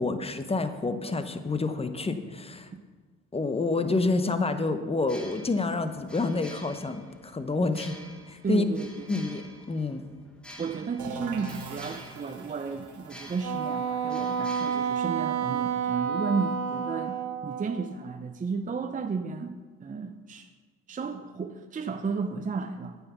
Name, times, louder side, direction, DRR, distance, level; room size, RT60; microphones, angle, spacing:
voice 1, 0.0-2.7 3.3-8.0 8.5-8.6 9.1-10.0, left 3 dB, 20° left, 9 dB, 0.9 m, -28 dB
sound 1, 5.0-15.8, equal, 5° left, 1.2 m, -49 dB
voice 2, 8.4-9.3 10.6-20.5 20.9-23.0, right 5 dB, 25° right, 6 dB, 0.6 m, -33 dB
sound 2, 11.0-16.6, right 5 dB, 75° right, 1.8 m, -44 dB
Wind instrument woodwind instrument, 13.4-17.9, right 7 dB, 60° right, 0.8 m, -30 dB
9.5 x 7.2 x 6.9 m, 1.4 s
cardioid pair, 90°, 30 cm